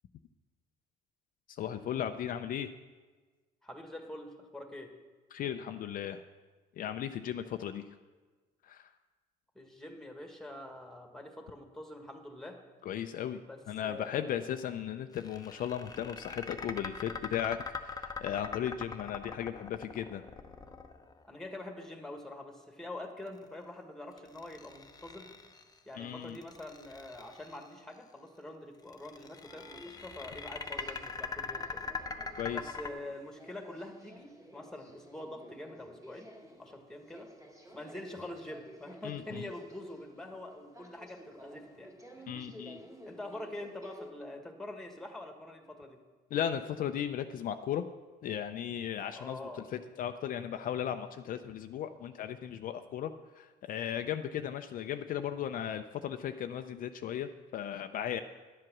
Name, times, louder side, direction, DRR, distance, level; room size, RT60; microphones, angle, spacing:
voice 1, 1.6-2.7 5.3-6.2 6.8-7.9 8.7-8.9 12.9-13.4 13.7-20.2 25.9-26.4 32.4-32.6 39.0-39.5 42.3-42.8 46.3-47.8 48.2-53.1 53.4-58.2, left 9 dB, 55° left, 7 dB, 0.5 m, -36 dB
voice 2, 3.6-4.9 9.5-12.6 13.5-14.5 21.3-25.3 25.8-31.7 32.5-36.3 36.6-37.3 37.7-42.2 43.0-46.0 49.1-49.7, left 1 dB, 5° left, 4 dB, 1.6 m, -45 dB
sound 1, 15.1-21.4 24.2-25.7 26.3-27.6 28.9-32.9, left 4 dB, 20° left, 0.7 m, -42 dB
sound 2, 29.5-44.1, equal, 20° right, 2.0 m, -53 dB
11.0 x 7.7 x 6.1 m, 1.3 s
cardioid pair, 110°, 17 cm